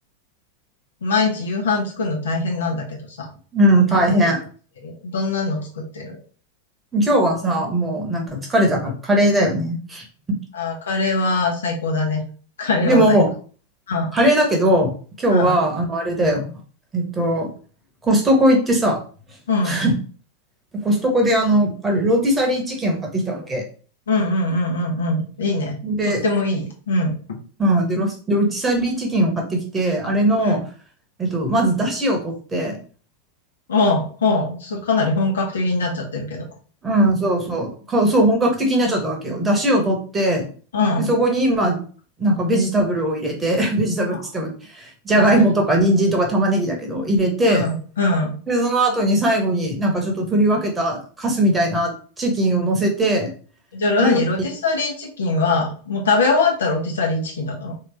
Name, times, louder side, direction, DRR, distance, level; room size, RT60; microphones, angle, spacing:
voice 1, 1.0-3.3 3.9-4.3 4.8-6.2 10.5-12.2 12.6-13.2 13.9-14.1 15.3-15.5 19.5-19.8 24.1-25.8 26.0-27.2 30.4-30.6 33.7-36.4 40.7-41.1 44.1-44.2 45.2-45.4 47.5-48.4 53.7-57.7, left 3 dB, 65° left, 0 dB, 1.1 m, -22 dB
voice 2, 3.5-4.4 6.9-10.0 12.8-13.3 14.1-14.9 15.2-16.6 16.9-17.5 18.0-19.0 19.6-20.0 20.7-23.6 25.8-26.2 27.6-30.6 31.2-32.8 36.8-40.4 41.0-41.8 42.2-47.7 48.5-51.9 52.2-53.3 54.0-54.2, right 1 dB, 15° right, 1 dB, 1.2 m, -19 dB
3.6 x 3.0 x 3.4 m, 0.40 s
figure-of-eight pair, 90°, 0 cm